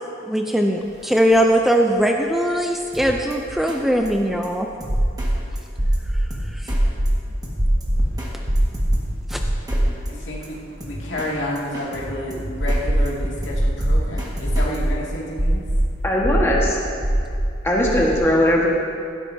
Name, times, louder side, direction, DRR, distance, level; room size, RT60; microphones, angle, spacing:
voice 1, 0.2-4.7 6.5-6.8 9.3-9.4, equal, ahead, 2 dB, 0.4 m, -20 dB
sound 1, 1.1-1.2 1.4-1.5 3.1-4.3 4.9-5.4 5.8-6.3 6.7-7.2 7.6-8.0 8.5-9.0 9.4-10.2 10.5-10.6 12.6-13.2 13.5-14.0 14.5-14.9 15.4-15.8 16.2-16.7 17.0-17.5 17.8-18.2, right 1 dB, 60° right, 2.8 m, -20 dB
Drum kit, 2.9-3.3 3.7-3.8 4.1-4.2 4.4-4.5 4.8-5.3 5.6-5.7 5.9-6.0 6.3-6.8 7.1-7.2 7.4-8.3 8.6-9.8 10.1-10.2 10.4-10.5 10.8-11.3 11.6-12.8 13.1-14.8, equal, 20° right, 1.5 m, -33 dB
voice 2, 10.1-10.6 10.8-15.6, left 1 dB, 85° left, -4 dB, 2.3 m, -30 dB
voice 3, 16.0-16.8 17.6-18.7, equal, 15° left, -4 dB, 1.4 m, -19 dB
16.0 x 12.0 x 2.7 m, 2.5 s
head